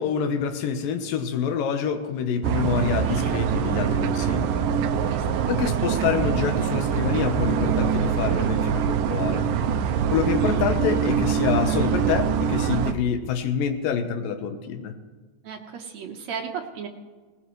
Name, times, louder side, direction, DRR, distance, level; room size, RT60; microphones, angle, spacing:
voice 1, 0.0-4.7 5.5-9.5 10.1-14.9, left 7 dB, 80° left, 8 dB, 2.7 m, -27 dB
sound 1, 2.4-12.9, right 7 dB, 85° right, 2.3 m, -24 dB
voice 2, 5.1-5.5 10.3-10.7 15.4-16.9, right 6 dB, 65° right, 3 dB, 2.1 m, -36 dB
19.5 x 19.0 x 3.2 m, 1.4 s
omnidirectional pair, 3.9 m